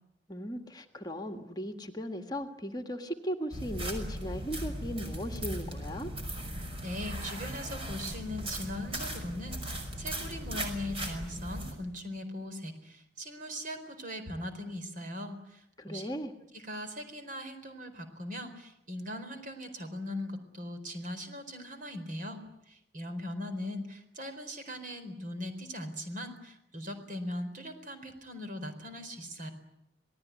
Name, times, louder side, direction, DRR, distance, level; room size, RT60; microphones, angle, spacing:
voice 1, 0.3-6.1 15.8-16.3, equal, 20° left, 5 dB, 1.7 m, -37 dB
sound 1, 3.5-11.7, right 1 dB, 30° right, 5.5 m, -38 dB
voice 2, 6.8-15.6 15.9-16.1 16.5-22.4 22.7-29.5, left 1 dB, 45° right, 7 dB, 4.3 m, -40 dB
27.5 x 19.0 x 9.5 m, 0.84 s
head